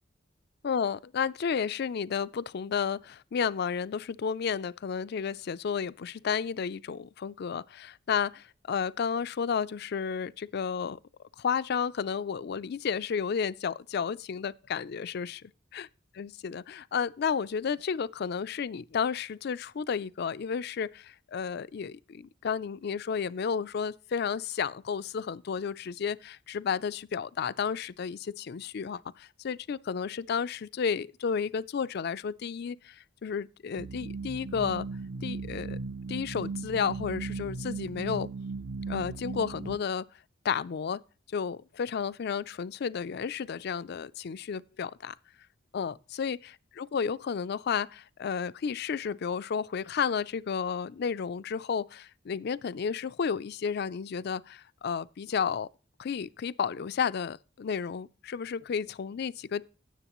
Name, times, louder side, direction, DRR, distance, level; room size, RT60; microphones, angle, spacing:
voice 1, 0.6-11.0 11.4-15.4 15.7-15.9 16.1-34.9 35.2-35.8 36.1-38.3 38.9-40.1 40.4-41.0 41.3-45.1 45.7-55.7 56.0-59.7, left 6 dB, 55° left, 0.4 m, -32 dB
sound 1, 33.8-39.8, right 4 dB, 60° right, 0.6 m, -37 dB
17.0 x 7.2 x 3.0 m
head